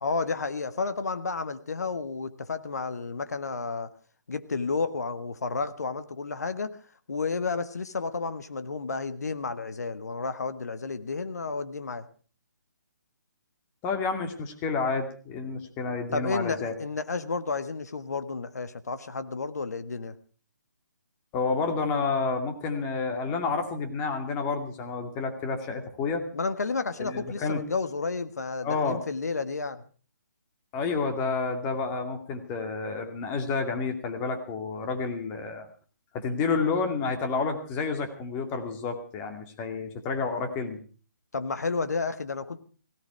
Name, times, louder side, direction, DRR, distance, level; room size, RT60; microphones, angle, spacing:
voice 1, 0.0-3.9 4.3-6.8 7.1-12.1 16.1-20.2 26.3-29.8 41.3-42.6, left 4 dB, 65° left, 11 dB, 1.5 m, -31 dB
voice 2, 13.8-16.7 21.3-26.2 27.0-27.6 28.6-29.0 30.7-35.7 36.1-40.8, left 4 dB, 20° left, 5 dB, 2.5 m, -30 dB
17.5 x 17.5 x 4.6 m, 0.39 s
figure-of-eight pair, 140°, 10 cm